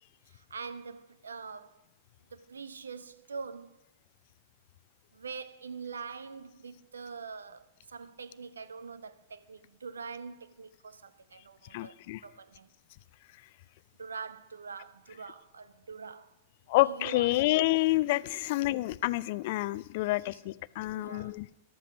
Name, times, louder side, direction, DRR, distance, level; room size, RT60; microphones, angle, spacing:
voice 1, 0.3-1.8 2.3-3.8 5.1-12.7 14.0-16.3 16.8-17.5 20.0-21.4, right 5 dB, 75° right, 0.7 m, -44 dB
voice 2, 11.7-12.2 16.7-21.5, left 18 dB, 55° left, 0.4 m, -28 dB
14.0 x 12.5 x 6.1 m
figure-of-eight pair, 95°, 0 cm